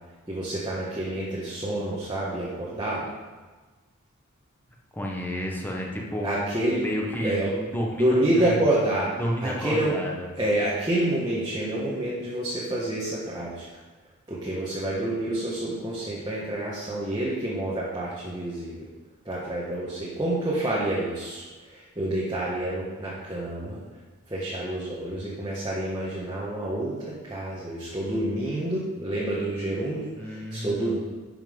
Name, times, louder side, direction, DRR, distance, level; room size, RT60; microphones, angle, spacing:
voice 1, 0.3-3.1 6.2-6.9 7.2-7.6 8.0-9.1 9.4-10.0 10.4-13.6 14.3-18.9 19.3-23.8 24.3-31.0, right 1 dB, 20° right, -7 dB, 1.7 m, -28 dB
voice 2, 4.9-6.4 6.7-8.6 9.2-10.3 30.1-30.9, equal, 10° left, -2 dB, 1.4 m, -31 dB
11.5 x 5.9 x 5.4 m, 1.3 s
head